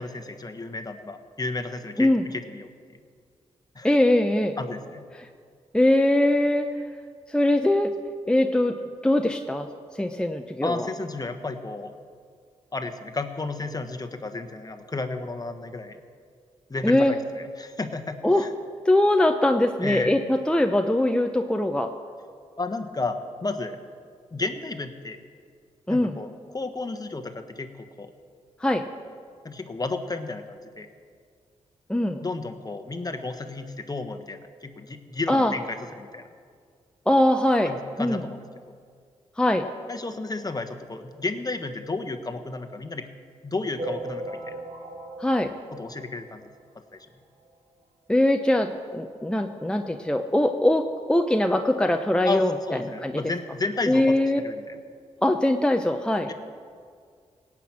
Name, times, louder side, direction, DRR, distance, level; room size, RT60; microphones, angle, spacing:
voice 1, 0.0-2.7 3.7-3.9 4.6-5.0 10.6-11.9 12.7-16.0 16.7-18.5 19.8-20.2 22.6-23.8 24.3-25.2 25.9-28.1 29.4-30.9 32.2-36.2 37.6-38.4 39.9-43.1 43.4-44.6 45.7-46.5 46.9-47.1 52.2-54.2 54.4-54.8 56.3-56.4, left 3 dB, 30° left, 6 dB, 1.3 m, -32 dB
voice 2, 3.8-4.5 5.7-6.7 7.3-7.9 8.3-8.8 9.0-9.7 10.0-10.9 16.8-17.1 18.2-18.4 18.9-21.9 25.9-26.2 28.6-28.8 31.9-32.2 35.3-35.5 37.1-38.2 39.4-39.7 45.2-45.5 48.1-52.5 53.0-53.2 53.9-54.4 55.2-56.3, left 1 dB, 5° left, 5 dB, 0.8 m, -22 dB
sound 1, 43.8-46.6 47.1-47.2 47.4-47.5 47.8-47.9 48.8-48.9 49.4-49.5, right 1 dB, 75° right, 1.6 m, -37 dB
17.5 x 6.0 x 8.7 m, 2.1 s
supercardioid pair, 50°, 13 cm